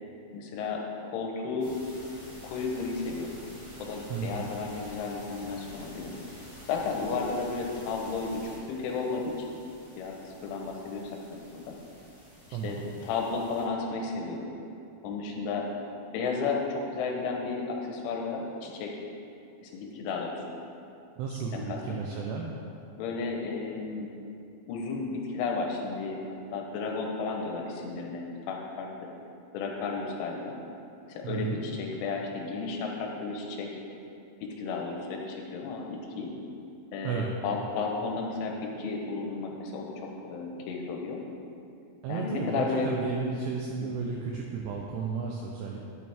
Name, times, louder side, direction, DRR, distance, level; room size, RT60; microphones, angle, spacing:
voice 1, 0.3-1.7 2.4-3.4 3.8-6.1 6.7-8.4 8.7-9.5 10.0-11.7 12.5-14.5 15.0-15.7 16.1-18.9 19.6-20.4 21.5-22.0 23.0-24.1 24.7-29.1 29.5-30.6 31.1-33.7 34.4-36.3 36.9-41.2 42.1-42.9 44.0-44.1, left 4 dB, 80° left, 0 dB, 3.2 m, -33 dB
sound 1, 1.6-13.7, equal, 65° right, 0.7 m, -49 dB
voice 2, 4.1-4.5 12.5-12.8 21.2-22.5 31.2-31.6 37.0-37.3 42.0-45.8, right 5 dB, 85° right, -1 dB, 2.4 m, -33 dB
10.5 x 8.8 x 3.4 m, 2.7 s
omnidirectional pair, 5.7 m